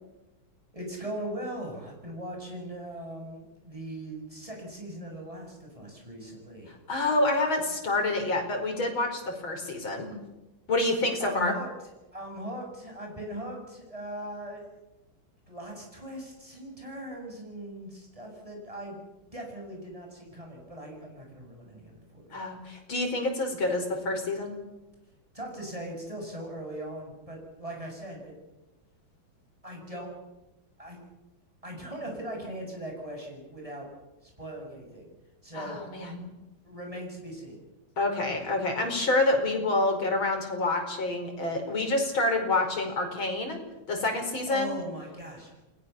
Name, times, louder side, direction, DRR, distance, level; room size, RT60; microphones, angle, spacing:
voice 1, 0.7-6.7 11.2-11.7 12.1-14.8 15.5-19.0 19.3-22.4 25.3-28.3 29.6-30.1 30.8-31.0 31.6-33.9 34.2-35.1 35.4-35.8 36.6-37.6 44.5-45.5, right 1 dB, 15° right, 1 dB, 7.7 m, -39 dB
voice 2, 6.9-10.1 10.7-11.5 22.3-24.6 35.5-36.3 38.0-43.6 43.9-44.8, left 2 dB, 80° left, 3 dB, 5.8 m, -27 dB
29.5 x 20.5 x 7.2 m, 1.0 s
omnidirectional pair, 2.2 m